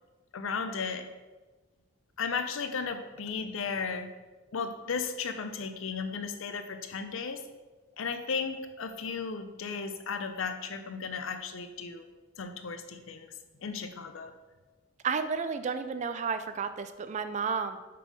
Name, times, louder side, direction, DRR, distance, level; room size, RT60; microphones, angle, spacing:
voice 1, 0.3-1.1 2.2-4.1 4.5-7.4 8.0-12.1 12.4-13.3 13.6-14.3, left 5 dB, 70° left, 8 dB, 0.5 m, -35 dB
voice 2, 15.0-17.8, right 5 dB, 35° right, 11 dB, 0.3 m, -32 dB
5.9 x 3.6 x 4.7 m, 1.2 s
head